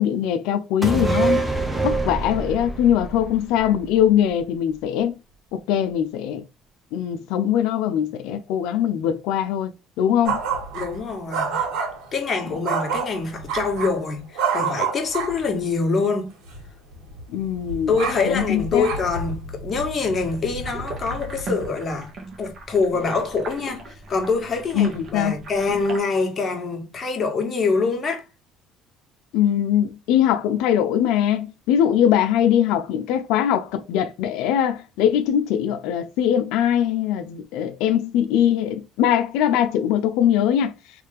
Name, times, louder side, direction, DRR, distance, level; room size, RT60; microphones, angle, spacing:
voice 1, 0.0-1.4 1.8-5.1 5.5-6.4 6.9-9.7 10.0-10.4 17.3-17.9 18.2-18.9 24.7-25.3 29.3-40.7, left 10 dB, 80° left, 0.4 m, -21 dB
sound 1, 0.8-4.4 4.7-4.8, right 3 dB, 5° right, 0.9 m, -25 dB
sound 2, 10.2-11.0 11.3-12.1 12.6-14.0 14.3-15.5 16.5-16.7 16.9-21.7, right 5 dB, 75° right, 2.0 m, -28 dB
voice 2, 10.7-11.7 12.1-16.3 17.9-22.1 22.4-28.2, left 4 dB, 35° left, 1.4 m, -25 dB
sound 3, 20.2-26.0, right 3 dB, 45° right, 1.4 m, -38 dB
3.2 x 3.2 x 3.4 m
cardioid pair, 105°, 0 cm